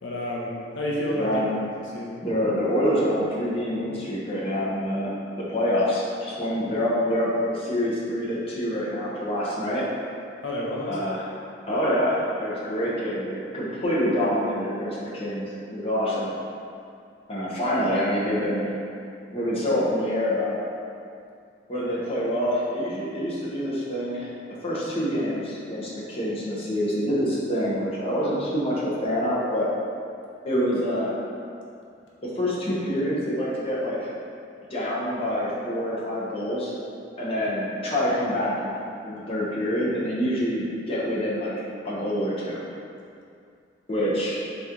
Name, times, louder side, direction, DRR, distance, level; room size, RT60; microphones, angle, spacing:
voice 1, 0.0-1.4 1.8-2.2 10.4-11.2 12.8-12.9, left 1 dB, 80° left, -4 dB, 0.6 m, -30 dB
voice 2, 1.1-1.5 2.2-9.8 10.9-11.2 11.7-16.3 17.3-18.8 19.3-20.5 21.7-24.3 24.6-29.7 30.4-31.1 32.2-34.1 34.7-36.7 37.2-38.7 39.0-42.6 43.9-44.4, equal, 35° left, -8 dB, 0.9 m, -26 dB
3.9 x 3.0 x 3.7 m, 2.4 s
head